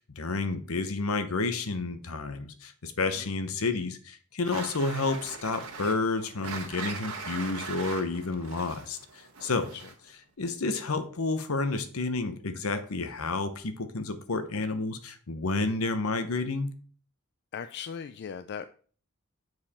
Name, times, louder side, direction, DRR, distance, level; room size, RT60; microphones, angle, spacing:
voice 1, 0.2-9.0 9.4-9.7 10.4-16.7, left 3 dB, 75° left, 10 dB, 0.9 m, -30 dB
sound 1, 4.4-10.1, right 4 dB, 85° right, 1.8 m, -40 dB
voice 2, 9.5-9.9 17.5-18.7, left 7 dB, 50° left, 10 dB, 0.3 m, -39 dB
7.5 x 4.8 x 4.2 m, 0.43 s
head